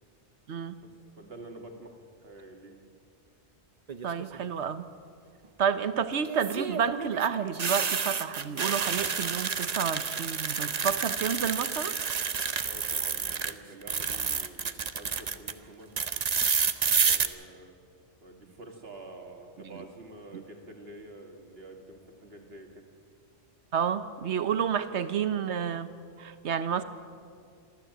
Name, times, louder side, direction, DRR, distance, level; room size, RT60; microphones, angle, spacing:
voice 1, 0.8-2.8 12.6-16.0 17.0-17.8 18.2-22.9, right 2 dB, 60° right, 3 dB, 2.5 m, -48 dB
sound 1, 3.9-4.4 6.2-13.5 13.8-15.5 16.0-17.3, right 6 dB, 40° right, 0.8 m, -29 dB
voice 2, 4.0-4.9 5.6-12.0 20.3-20.4 23.7-25.9 26.2-26.8, right 7 dB, 75° right, 12 dB, 1.2 m, -30 dB
26.5 x 13.0 x 7.9 m, 2.3 s
omnidirectional pair, 1.2 m